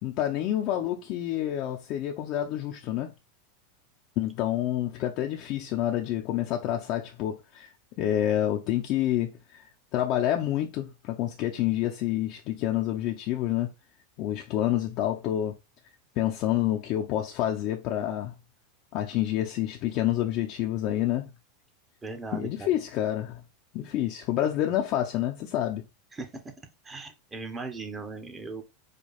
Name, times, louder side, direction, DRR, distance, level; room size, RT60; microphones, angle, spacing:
voice 1, 0.0-3.1 4.2-7.7 8.0-13.7 14.2-15.5 16.2-18.3 18.9-21.3 22.3-23.4 23.7-25.8, left 12 dB, 50° left, 0.7 m, -28 dB
voice 2, 22.0-22.7 26.1-26.5 26.8-28.6, right 3 dB, 20° right, 1.1 m, -38 dB
5.1 x 2.3 x 4.2 m
hypercardioid pair, 90°, 0 cm